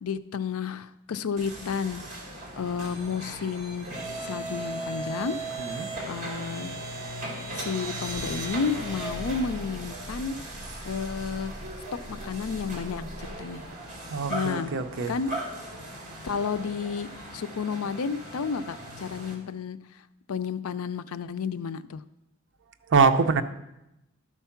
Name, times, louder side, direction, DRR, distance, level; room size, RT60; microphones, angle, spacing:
voice 1, 0.0-2.2 2.6-3.9 4.2-5.4 6.1-6.8 7.5-10.3 10.8-11.5 12.1-13.6 14.3-14.7 15.1-15.3 16.2-19.8 20.3-22.0, left 6 dB, 80° left, 13 dB, 0.4 m, -31 dB
sound 1, 1.4-19.4, right 1 dB, 40° right, 2.3 m, -37 dB
voice 2, 5.6-5.9 14.1-15.2 16.1-16.3 22.9-23.4, right 4 dB, 60° right, 9 dB, 0.6 m, -24 dB
12.5 x 4.6 x 5.8 m, 0.91 s
head